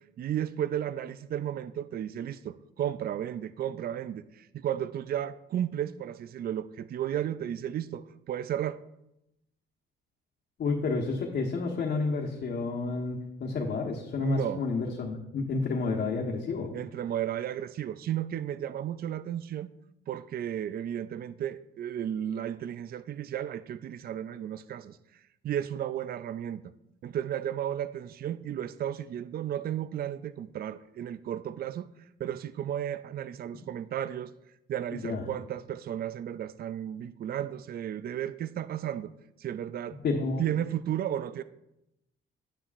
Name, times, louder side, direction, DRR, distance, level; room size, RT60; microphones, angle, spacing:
voice 1, 0.2-8.8 14.2-14.6 16.7-19.7 20.1-25.0 25.4-26.6 27.0-31.9 32.2-34.3 34.7-39.1 39.4-40.0 40.4-41.4, right 10 dB, 50° right, 14 dB, 0.4 m, -33 dB
voice 2, 10.6-16.7 34.9-35.2 40.0-40.4, left 4 dB, 55° left, -1 dB, 1.2 m, -30 dB
9.7 x 9.6 x 2.5 m, 0.87 s
cardioid pair, 90°, 20 cm